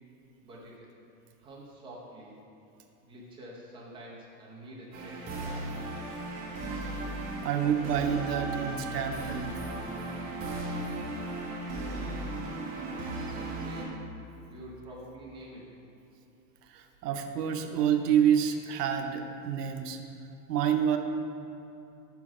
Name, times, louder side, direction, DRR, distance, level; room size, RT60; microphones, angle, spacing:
voice 1, 0.4-0.9 1.4-2.4 3.0-6.3 13.5-14.0 14.5-15.7, right 1 dB, 10° right, -5 dB, 0.7 m, -47 dB
sound 1, 4.9-13.8, right 2 dB, 25° right, 1.1 m, -36 dB
voice 2, 7.4-9.6 16.7-20.0 20.5-21.0, right 8 dB, 70° right, 6 dB, 0.8 m, -28 dB
5.9 x 4.6 x 6.0 m, 2.8 s
supercardioid pair, 160°, 49 cm